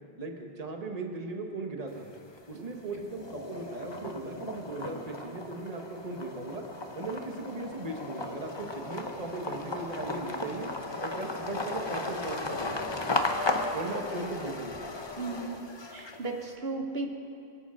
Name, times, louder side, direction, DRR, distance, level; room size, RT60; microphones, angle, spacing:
voice 1, 0.2-2.1 2.5-6.6 6.9-10.7 11.0-13.0 13.7-14.8, right 2 dB, 35° right, 3 dB, 1.4 m, -38 dB
sound 1, 1.9-2.5 2.9-16.4, left 2 dB, 25° left, 0.8 m, -35 dB
voice 2, 15.2-15.6 15.9-17.1, right 3 dB, 70° right, 3 dB, 1.3 m, -35 dB
23.0 x 8.2 x 6.4 m, 2.7 s
omnidirectional pair, 1.1 m